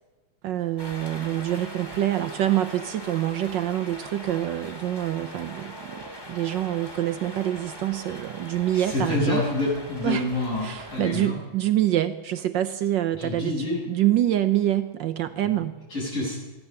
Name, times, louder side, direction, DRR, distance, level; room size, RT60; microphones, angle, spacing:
voice 1, 0.4-9.4 10.0-10.2 10.6-15.8, right 13 dB, 70° right, 11 dB, 1.2 m, -26 dB
sound 1, 0.8-11.3, equal, 10° left, 2.1 m, -41 dB
voice 2, 8.7-11.4 13.2-13.8 15.4-15.6 15.9-16.4, left 2 dB, 75° left, -6 dB, 8.5 m, -27 dB
15.0 x 12.5 x 6.8 m, 1.2 s
omnidirectional pair, 2.3 m